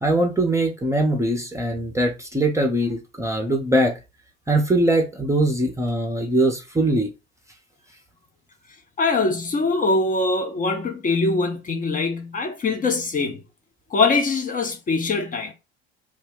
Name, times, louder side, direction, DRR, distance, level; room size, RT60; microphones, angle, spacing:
voice 1, 0.0-3.9 4.5-7.1, right 1 dB, 10° right, 0.7 m, -21 dB
voice 2, 9.0-13.4 13.9-15.5, left 3 dB, 25° left, 0.8 m, -23 dB
2.7 x 2.2 x 3.8 m
figure-of-eight pair, 65°, 32 cm